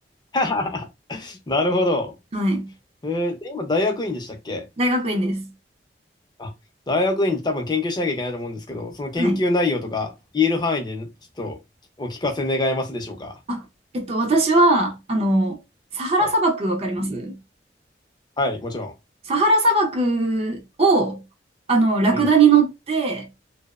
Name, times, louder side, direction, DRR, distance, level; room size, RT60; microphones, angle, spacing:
voice 1, 0.3-2.1 3.0-4.7 6.4-6.5 6.9-11.1 11.4-11.6 12.0-13.4 16.2-16.3 18.4-18.9 22.1-22.3, left 2 dB, 25° left, 0.5 m, -24 dB
voice 2, 2.3-2.7 4.8-5.5 9.2-9.4 13.5-13.6 13.9-15.6 15.9-17.4 19.3-21.2 21.7-23.3, right 2 dB, 35° right, 0.4 m, -20 dB
2.7 x 2.0 x 2.3 m
head